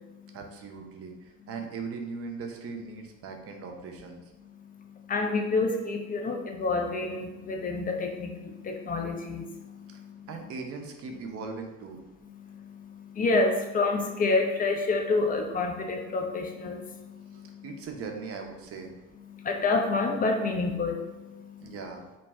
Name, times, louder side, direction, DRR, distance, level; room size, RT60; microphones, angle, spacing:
voice 1, 0.3-4.2 10.3-12.0 17.3-18.9 21.6-22.1, right 4 dB, 35° right, 3 dB, 0.5 m, -39 dB
voice 2, 5.1-10.3 12.3-17.6 19.3-21.7, left 3 dB, 25° left, 3 dB, 0.3 m, -29 dB
2.6 x 2.1 x 3.3 m, 1.1 s
hypercardioid pair, 55°, 41 cm